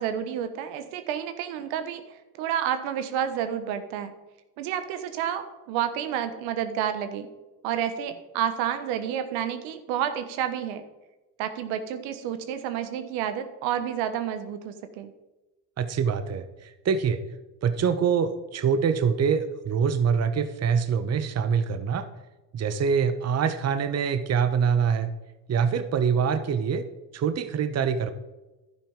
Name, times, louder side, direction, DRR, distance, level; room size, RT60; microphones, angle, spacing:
voice 1, 0.0-2.0 2.4-4.1 4.6-7.3 7.6-10.8 11.4-15.1, right 9 dB, 70° right, 9 dB, 1.3 m, -30 dB
voice 2, 15.8-17.2 17.6-22.1 22.5-25.1 25.5-26.8 27.1-28.1, right 6 dB, 30° right, 10 dB, 1.0 m, -25 dB
11.5 x 9.9 x 3.7 m, 1.1 s
hypercardioid pair, 70°, 49 cm